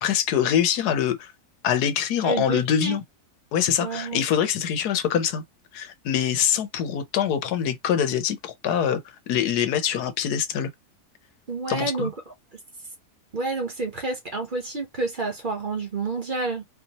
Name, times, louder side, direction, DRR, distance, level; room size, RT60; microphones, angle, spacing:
voice 1, 0.0-1.3 1.6-3.0 3.5-5.4 5.7-9.0 9.3-10.7 11.7-12.1, left 9 dB, 90° left, 1.3 m, -24 dB
voice 2, 2.2-3.0 3.8-4.2 11.5-12.3 13.3-16.6, right 3 dB, 35° right, 1.1 m, -29 dB
4.1 x 2.8 x 2.9 m
omnidirectional pair, 1.6 m